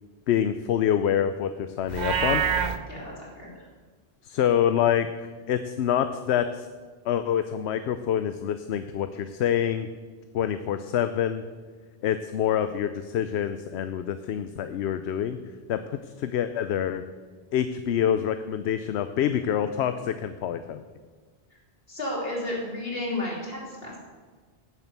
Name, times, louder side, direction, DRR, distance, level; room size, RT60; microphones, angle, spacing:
voice 1, 0.3-2.4 4.2-5.1 5.5-6.7 7.0-9.9 10.3-11.4 12.0-15.4 15.7-17.0 17.5-20.8, left 9 dB, 85° left, 10 dB, 0.9 m, -26 dB
Livestock farm animals working animals, 1.9-2.8, right 7 dB, 50° right, 0.7 m, -25 dB
voice 2, 2.9-3.6 21.9-24.0, left 1 dB, 65° left, -4 dB, 3.6 m, -32 dB
10.5 x 7.3 x 8.1 m, 1.5 s
omnidirectional pair, 1.1 m